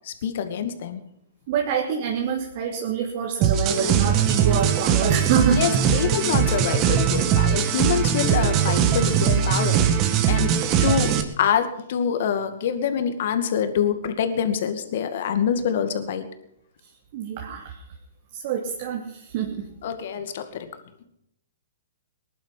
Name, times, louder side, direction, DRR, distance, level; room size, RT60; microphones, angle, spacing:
voice 1, 0.0-1.0 5.5-10.5 10.8-16.3 19.8-20.7, left 8 dB, 55° left, 8 dB, 2.2 m, -25 dB
voice 2, 1.5-5.6 17.1-17.8 18.3-19.7, right 7 dB, 50° right, 0 dB, 2.7 m, -26 dB
sound 1, 3.4-11.2, right 8 dB, 35° right, 2.0 m, -21 dB
20.5 x 11.0 x 5.8 m, 0.75 s
hypercardioid pair, 125°, 0 cm